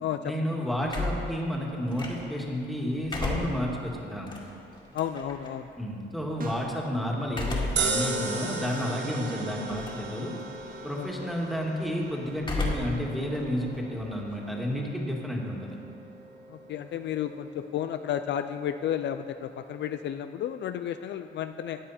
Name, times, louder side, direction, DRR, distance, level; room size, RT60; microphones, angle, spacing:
voice 1, 0.2-4.3 5.8-10.3 10.8-15.8, equal, ahead, -2 dB, 2.0 m, -31 dB
door closing, 0.9-2.5 2.9-5.5 7.3-8.0 8.5-8.6 9.6-10.1 10.4-10.8 12.4-13.1 13.3-14.8, left 2 dB, 25° left, 2.1 m, -33 dB
voice 2, 4.9-5.6 16.7-21.8, left 10 dB, 65° left, 9 dB, 0.4 m, -32 dB
sound 1, 6.4-6.9, right 3 dB, 45° right, 1.0 m, -39 dB
sound 2, 7.8-20.1, right 4 dB, 65° right, 1.2 m, -37 dB
14.0 x 8.9 x 4.2 m, 2.6 s
cardioid pair, 90°, 20 cm